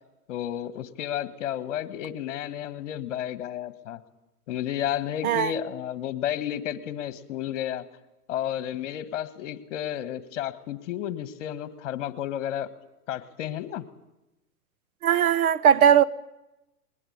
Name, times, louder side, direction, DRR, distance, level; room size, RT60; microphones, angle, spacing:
voice 1, 0.3-4.0 4.5-7.8 8.3-12.7 13.1-13.8, left 11 dB, 50° left, 1.7 m, -32 dB
voice 2, 15.0-16.0, right 9 dB, 65° right, 1.1 m, -19 dB
20.5 x 20.5 x 8.7 m
hypercardioid pair, 145°, 46 cm